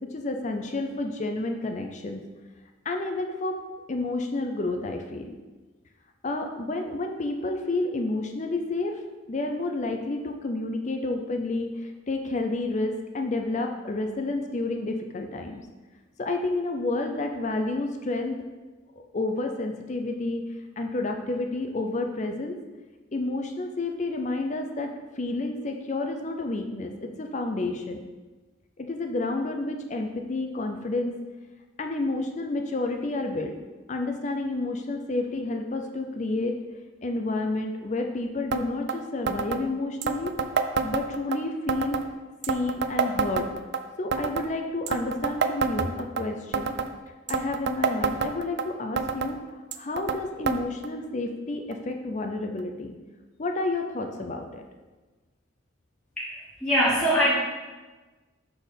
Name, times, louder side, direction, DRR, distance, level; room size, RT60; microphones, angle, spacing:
voice 1, 0.0-2.2 2.8-3.6 3.9-5.3 6.2-9.0 9.3-15.6 16.2-18.4 19.1-20.4 20.8-22.5 23.1-28.0 28.8-31.2 31.8-33.6 33.9-36.6 37.0-40.3 40.8-42.0 42.5-43.5 44.0-46.7 47.3-49.4 49.7-52.9 53.4-54.6, left 2 dB, 35° left, 4 dB, 0.5 m, -30 dB
sound 1, 38.5-38.6 38.9-39.0 39.3-39.6 40.0-41.4 41.7-42.1 42.4-43.8 44.1-44.5 44.9-46.2 46.5-46.9 47.3-48.6 49.0-49.3 49.7-50.2 50.5-50.6 50.8-50.9 51.7-51.8 52.6-52.7, right 5 dB, 55° right, 0.4 m, -27 dB
voice 2, 56.2-57.3, equal, 5° left, -9 dB, 1.4 m, -23 dB
5.8 x 4.2 x 5.2 m, 1.2 s
head